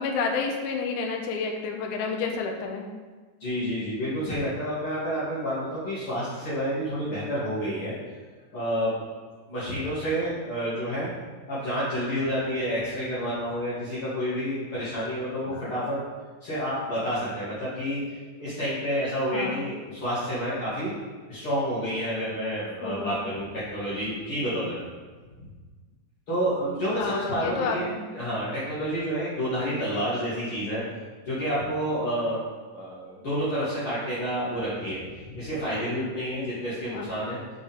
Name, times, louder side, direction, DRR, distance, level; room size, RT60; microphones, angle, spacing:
voice 1, 0.0-2.9 15.5-15.7 19.3-19.6 22.8-23.2 26.9-28.3 36.8-37.1, left 5 dB, 80° left, 2 dB, 2.1 m, -30 dB
voice 2, 3.4-8.0 8.5-9.0 9.5-11.1 11.5-16.0 16.4-18.0 18.4-20.9 21.3-24.8 26.3-27.8 28.1-30.8 31.3-32.4 32.7-37.4, equal, 45° left, -12 dB, 2.3 m, -29 dB
6.8 x 5.2 x 3.5 m, 1.4 s
omnidirectional pair, 3.7 m